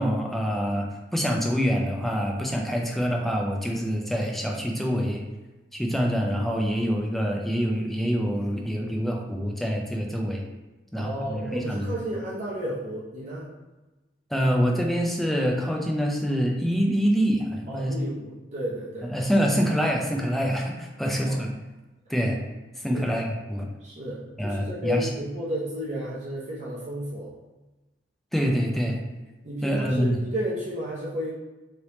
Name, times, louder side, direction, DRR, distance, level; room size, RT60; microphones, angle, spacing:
voice 1, 0.0-5.2 5.7-10.4 10.9-11.9 14.3-17.9 19.0-21.5 22.1-22.4 22.8-23.6 24.4-25.1 28.3-29.0 29.6-30.2, equal, ahead, 0 dB, 0.4 m, -26 dB
voice 2, 10.9-13.5 17.7-19.1 21.2-21.4 22.9-23.1 23.8-27.3 29.4-31.3, equal, 40° right, -6 dB, 0.6 m, -32 dB
3.3 x 2.9 x 3.0 m, 1.1 s
head